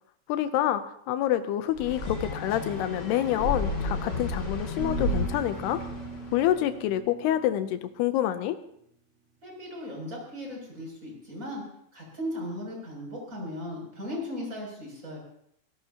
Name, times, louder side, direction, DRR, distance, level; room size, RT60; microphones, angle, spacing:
voice 1, 0.3-5.8 6.3-8.6, left 12 dB, 80° left, 10 dB, 2.3 m, -27 dB
sound 1, 1.7-6.6, left 2 dB, 35° left, 1.9 m, -32 dB
sound 2, 4.8-7.9, right 7 dB, 60° right, 1.8 m, -41 dB
voice 2, 9.4-11.6 11.9-15.2, left 1 dB, 15° right, -2 dB, 7.3 m, -37 dB
26.5 x 18.0 x 2.9 m, 0.72 s
omnidirectional pair, 5.5 m